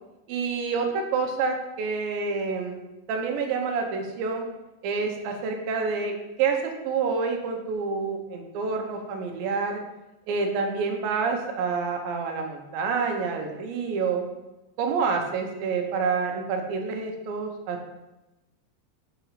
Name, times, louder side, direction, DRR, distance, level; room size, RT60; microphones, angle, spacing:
voice 1, 0.3-2.8 3.1-4.5 4.8-6.6 6.8-9.8 10.3-14.3 14.8-17.8, right 5 dB, 80° right, 3 dB, 2.5 m, -28 dB
6.7 x 4.8 x 3.0 m, 1.0 s
omnidirectional pair, 4.2 m